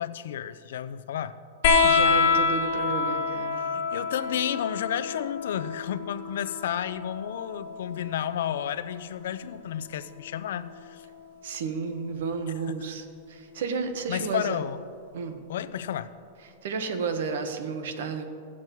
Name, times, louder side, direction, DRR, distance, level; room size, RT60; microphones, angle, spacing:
voice 1, 0.0-1.4 3.6-11.1 14.1-14.8 15.5-16.1, left 10 dB, 70° left, 12 dB, 0.5 m, -32 dB
sound 1, 1.6-8.7 10.1-10.9 12.2-12.3, left 5 dB, 50° left, 1.1 m, -27 dB
voice 2, 1.8-3.8 11.4-14.6 15.1-15.4 16.6-18.2, right 5 dB, 70° right, 7 dB, 1.1 m, -32 dB
16.0 x 7.3 x 4.6 m, 2.4 s
supercardioid pair, 175°, 0 cm